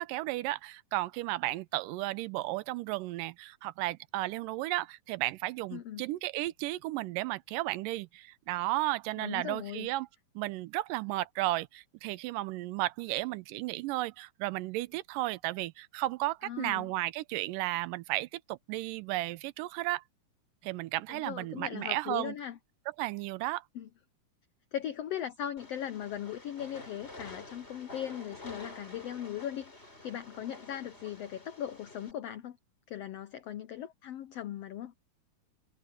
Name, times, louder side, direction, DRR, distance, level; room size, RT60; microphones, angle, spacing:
voice 1, 0.0-10.1 10.4-20.0 20.6-22.4 23.0-23.6, right 18 dB, 80° right, 2.3 m, -34 dB
voice 2, 5.7-6.0 9.2-9.9 16.4-16.9 21.1-22.6 23.7-23.9 24.7-32.6 32.9-34.9, left 10 dB, 85° left, 1.4 m, -39 dB
Train, 25.6-32.1, left 2 dB, 20° left, 4.3 m, -49 dB
omnidirectional pair, 3.9 m